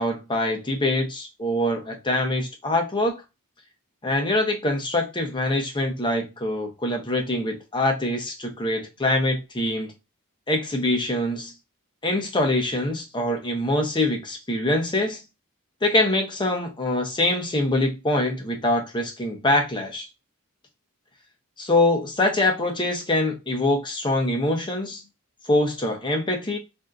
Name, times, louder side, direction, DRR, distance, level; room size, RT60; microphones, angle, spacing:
voice 1, 0.0-3.2 4.0-9.9 10.5-11.5 12.0-15.2 15.8-20.1 21.6-25.0 25.5-26.6, left 1 dB, 20° left, 0.7 m, -24 dB
3.4 x 2.6 x 2.4 m
head